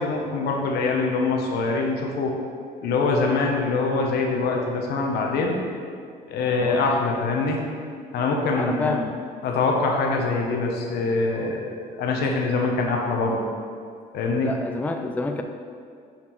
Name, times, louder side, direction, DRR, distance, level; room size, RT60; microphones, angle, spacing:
voice 1, 0.0-2.4 2.8-5.6 6.3-7.6 8.1-9.0 9.4-13.5 14.1-14.5, left 3 dB, 75° left, 0 dB, 1.0 m, -24 dB
voice 2, 8.6-9.2 14.4-15.4, left 3 dB, 10° left, 5 dB, 0.4 m, -28 dB
7.3 x 4.3 x 4.6 m, 2.2 s
cardioid pair, 110°, 17 cm